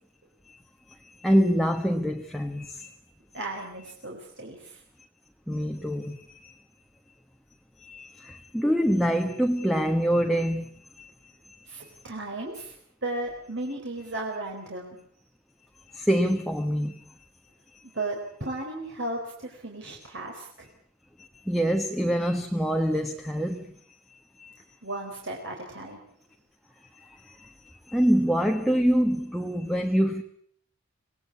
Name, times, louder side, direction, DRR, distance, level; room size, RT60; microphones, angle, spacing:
voice 1, 0.9-3.0 5.5-6.6 7.8-11.1 11.5-11.7 15.9-17.0 17.7-17.8 21.2-23.7 24.1-24.6 26.9-30.2, equal, ahead, 1.3 m, -26 dB
voice 2, 3.3-4.8 11.7-12.8 13.0-15.0 17.9-20.7 24.8-26.0, right 2 dB, 55° right, 4.3 m, -35 dB
26.0 x 19.0 x 8.6 m
head